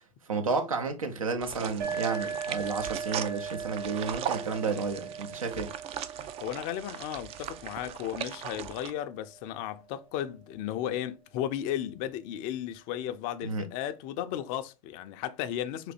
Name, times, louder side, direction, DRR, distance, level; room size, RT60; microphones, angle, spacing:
voice 1, 0.3-5.8 13.4-13.7, right 4 dB, 85° right, 0.8 m, -32 dB
sound 1, 1.4-8.9, right 10 dB, 35° right, 0.4 m, -39 dB
sound 2, 1.8-9.3, right 6 dB, 55° right, 1.3 m, -39 dB
voice 2, 6.1-15.9, left 11 dB, 50° left, 0.5 m, -35 dB
3.9 x 2.7 x 4.1 m
hypercardioid pair, 90°, 17 cm